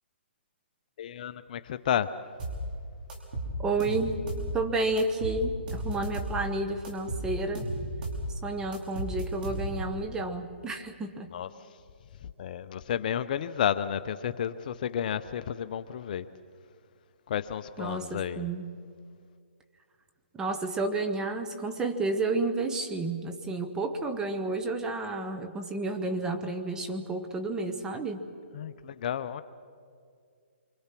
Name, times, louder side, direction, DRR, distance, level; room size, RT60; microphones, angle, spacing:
voice 1, 1.0-2.1 11.3-11.5 12.4-16.2 17.3-18.5 28.5-29.4, left 9 dB, 45° left, 12 dB, 0.7 m, -31 dB
sound 1, 2.4-2.6 3.1-4.5 5.0-6.4 6.8-8.3 8.7-9.9, right 1 dB, 45° right, 5.1 m, -34 dB
voice 2, 3.6-4.2 4.5-7.7 8.4-11.3 17.8-18.7 20.3-28.2, right 2 dB, 10° right, 6 dB, 1.2 m, -31 dB
27.0 x 24.5 x 6.0 m, 2.2 s
hypercardioid pair, 150°, 6 cm